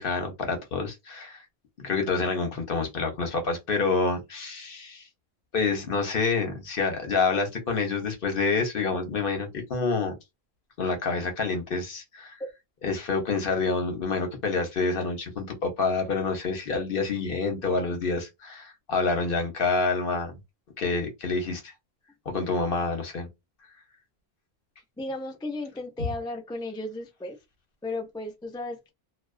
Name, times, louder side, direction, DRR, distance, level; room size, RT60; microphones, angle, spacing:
voice 1, 0.0-1.4 1.8-5.0 5.5-10.2 10.8-12.4 12.8-20.4 20.8-21.6 22.3-23.3, left 4 dB, 60° left, 1.0 m, -27 dB
voice 2, 25.0-27.4 27.8-28.9, left 2 dB, 5° left, 0.4 m, -34 dB
2.3 x 2.3 x 2.3 m
omnidirectional pair, 1.1 m